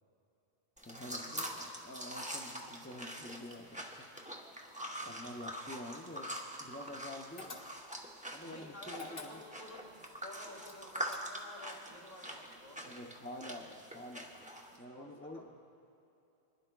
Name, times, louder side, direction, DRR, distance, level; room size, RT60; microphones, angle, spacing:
sound 1, 0.8-14.8, right 1 dB, 5° right, 0.9 m, -44 dB
voice 1, 0.9-3.9 5.0-6.3 6.6-7.5 8.3-9.4 12.8-14.5 14.8-15.5, left 1 dB, 15° left, 1 dB, 0.5 m, -48 dB
voice 2, 4.9-5.3 8.4-13.0 14.5-15.5, left 1 dB, 45° left, -5 dB, 3.0 m, -53 dB
sound 2, 7.4-8.1 8.9-9.8 10.6-11.6, left 3 dB, 65° left, 1.5 m, -48 dB
25.0 x 11.0 x 2.3 m, 2.8 s
omnidirectional pair, 1.1 m